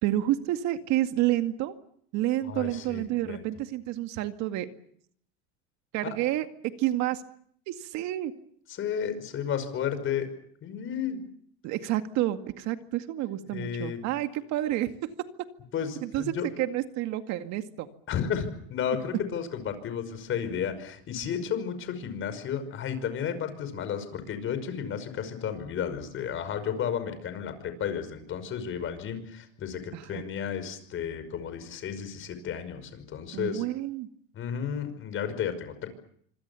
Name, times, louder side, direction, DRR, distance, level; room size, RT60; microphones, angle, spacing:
voice 1, 0.0-1.8 2.1-4.7 5.9-6.5 6.8-7.2 7.7-8.3 11.6-15.3 16.0-16.3 16.6-17.9 29.9-30.2 33.3-34.1, right 14 dB, 55° right, 8 dB, 2.2 m, -29 dB
voice 2, 2.5-3.4 6.0-6.1 8.7-10.3 10.6-11.2 13.5-14.0 15.7-16.5 18.1-33.6 34.3-35.9, left 8 dB, 40° left, 10 dB, 5.5 m, -33 dB
26.0 x 25.5 x 7.1 m, 0.65 s
supercardioid pair, 130°, 32 cm